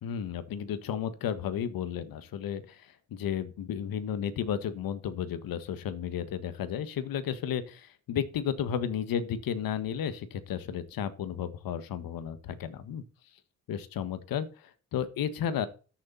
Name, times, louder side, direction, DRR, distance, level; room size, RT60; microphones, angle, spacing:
voice 1, 0.0-13.0 13.7-15.7, left 8 dB, 65° left, 13 dB, 1.6 m, -33 dB
13.5 x 7.3 x 4.1 m, 0.36 s
supercardioid pair, 60°, 37 cm